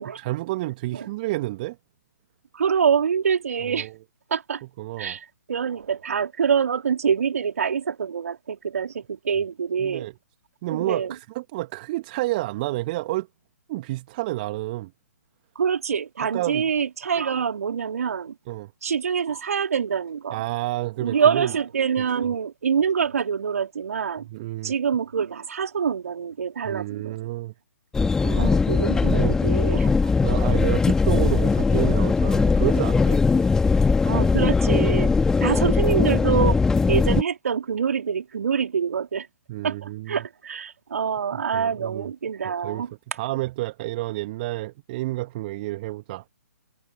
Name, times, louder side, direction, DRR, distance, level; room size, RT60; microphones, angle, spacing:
voice 1, 0.2-1.8 3.7-3.9 4.8-5.2 9.8-10.1 10.6-13.3 13.7-14.9 16.3-16.7 18.5-18.7 20.3-21.6 22.0-22.1 24.2-24.7 26.6-27.5 28.0-28.6 28.9-29.4 30.2-33.5 39.5-40.3 41.3-42.1 42.6-42.8 43.2-46.2, right 18 dB, 30° right, 1.9 m, -30 dB
voice 2, 2.5-3.9 4.3-4.6 5.0-10.1 10.7-11.1 15.5-18.3 18.8-20.4 21.0-24.3 24.6-27.2 28.4-30.1 34.0-35.1 35.4-36.6 36.9-39.3 39.6-42.9, right 7 dB, 55° right, 3.3 m, -25 dB
sound 1, 27.9-37.2, left 4 dB, 5° left, 1.8 m, -20 dB
figure-of-eight pair, 130°, 9 cm